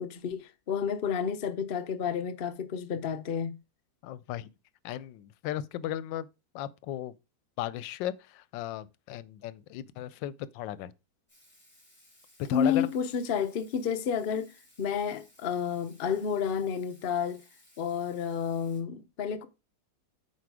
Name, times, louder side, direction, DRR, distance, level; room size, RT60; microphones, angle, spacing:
voice 1, 0.0-3.5 12.5-14.5 14.8-17.4 17.8-19.5, left 7 dB, 60° left, 0.5 m, -30 dB
voice 2, 4.0-4.5 4.8-6.3 6.5-7.1 7.6-10.9 12.5-12.9, left 12 dB, 85° left, 1.3 m, -36 dB
Water tap faucet / Sink (filling or washing), 11.3-18.8, left 1 dB, 5° left, 4.4 m, -61 dB
8.4 x 4.8 x 4.7 m
omnidirectional pair, 1.9 m